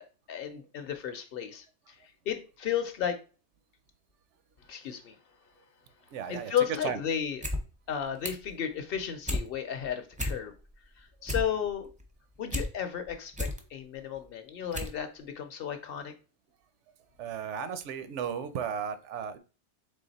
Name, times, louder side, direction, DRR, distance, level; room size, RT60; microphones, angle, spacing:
voice 1, 0.0-2.0 2.3-3.2 4.7-5.2 6.3-7.4 7.9-10.5 11.0-11.9 12.4-16.1, left 8 dB, 60° left, 7 dB, 0.8 m, -33 dB
voice 2, 6.1-6.5 6.8-7.0 17.2-19.4, right 7 dB, 85° right, 12 dB, 0.9 m, -35 dB
sound 1, 7.2-7.6 7.9-8.5 8.9-9.5 9.8-9.9 10.1-10.7 11.0-12.7 13.1-13.6 14.2-14.3 14.7-15.0 15.3-15.4, left 1 dB, 10° right, 0.4 m, -33 dB
3.8 x 3.1 x 4.0 m, 0.34 s
omnidirectional pair, 1.2 m